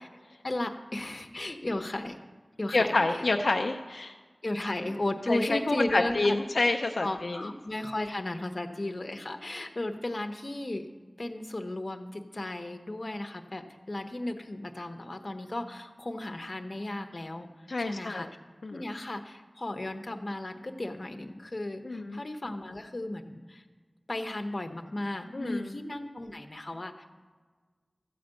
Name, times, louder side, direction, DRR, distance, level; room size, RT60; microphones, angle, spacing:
voice 1, 0.4-2.2 2.6-3.2 4.4-6.4 7.0-10.9 11.2-17.5 17.8-18.3 18.7-23.6 24.1-27.1, left 1 dB, 55° left, 6 dB, 1.1 m, -35 dB
voice 2, 2.7-4.1 5.3-7.5 17.7-18.3 18.6-18.8 21.8-22.2 25.3-25.8, left 2 dB, 90° left, 4 dB, 0.5 m, -28 dB
14.0 x 5.1 x 9.0 m, 1.4 s
wide cardioid pair, 50°, 0 cm